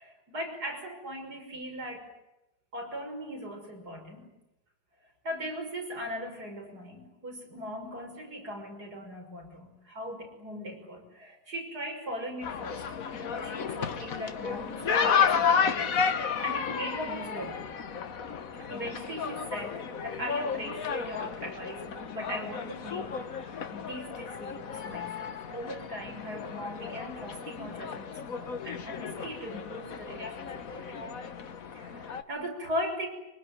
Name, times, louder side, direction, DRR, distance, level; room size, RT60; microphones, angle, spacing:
voice 1, 0.0-2.1 2.7-4.3 5.2-12.8 13.2-17.7 18.6-31.3 31.7-33.1, equal, 65° right, 1 dB, 6.6 m, -39 dB
sound 1, 12.4-32.2, left 6 dB, 55° left, 1.6 m, -32 dB
24.5 x 24.0 x 9.7 m, 0.94 s
omnidirectional pair, 1.8 m